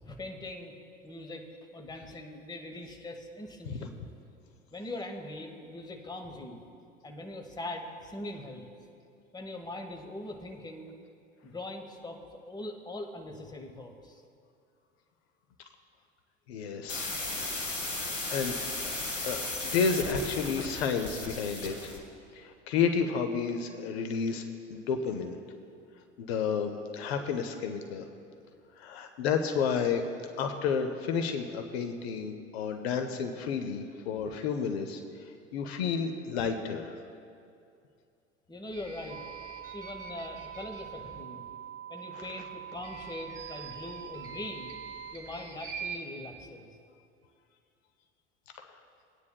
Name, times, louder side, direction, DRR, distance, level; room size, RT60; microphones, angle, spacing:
voice 1, 0.0-0.8 1.0-1.5 1.7-4.0 4.7-6.6 7.0-8.7 9.3-10.9 11.4-14.2 38.5-39.2 39.7-41.5 41.9-44.7 45.1-46.7, left 1 dB, 10° left, 3 dB, 1.0 m, -41 dB
voice 2, 16.5-17.1 18.3-18.6 19.2-21.9 22.3-24.4 24.7-25.4 26.2-28.1 28.8-30.0 30.4-35.0 35.5-36.9 42.1-42.3 48.6-48.7, left 6 dB, 60° left, 6 dB, 0.8 m, -31 dB
sound 1, 16.9-22.0, left 2 dB, 85° left, 1.3 m, -35 dB
sound 2, 38.7-41.2 42.7-46.0, right 5 dB, 10° right, 2.3 m, -45 dB
sound 3, 39.1-45.1, right 10 dB, 55° right, 0.6 m, -44 dB
20.0 x 9.5 x 2.2 m, 2.4 s
figure-of-eight pair, 75°, 36 cm